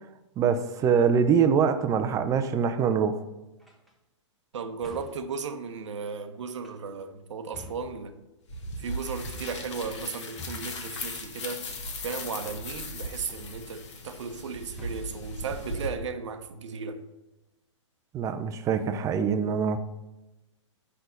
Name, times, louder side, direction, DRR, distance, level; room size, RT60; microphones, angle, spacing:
voice 1, 0.4-3.2 18.1-19.8, right 6 dB, 20° right, 0.6 m, -24 dB
sound 1, 3.6-3.9 4.8-5.3 6.5-7.0 7.5-8.4 9.2-9.8 10.4-11.0 12.4-13.0 13.3-13.7 14.8-15.3 15.9-16.5, left 2 dB, ahead, 1.2 m, -47 dB
voice 2, 4.5-8.2 8.8-11.7 12.0-17.0, right 5 dB, 70° right, 1.0 m, -35 dB
sound 2, 8.5-15.9, left 1 dB, 65° left, 1.5 m, -38 dB
6.0 x 5.6 x 6.6 m
hypercardioid pair, 125°, 16 cm